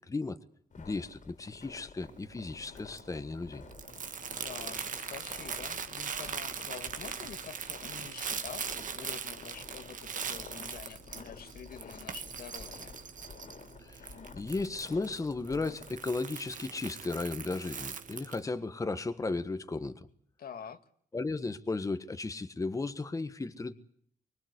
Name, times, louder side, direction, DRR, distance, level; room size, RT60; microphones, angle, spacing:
voice 1, 0.1-0.4 0.8-3.6 13.8-14.1 14.3-20.1 21.1-23.7, left 3 dB, 20° left, 10 dB, 1.5 m, -35 dB
sound 1, 0.7-16.2, left 5 dB, 55° left, 3.2 m, -51 dB
Crumpling crinkling, 2.0-18.4, right 6 dB, 60° right, 2.1 m, -41 dB
voice 2, 4.3-8.7 8.9-13.0 20.4-20.8, left 7 dB, 80° left, 9 dB, 1.9 m, -47 dB
24.5 x 23.5 x 8.2 m, 0.62 s
wide cardioid pair, 160°, 15 cm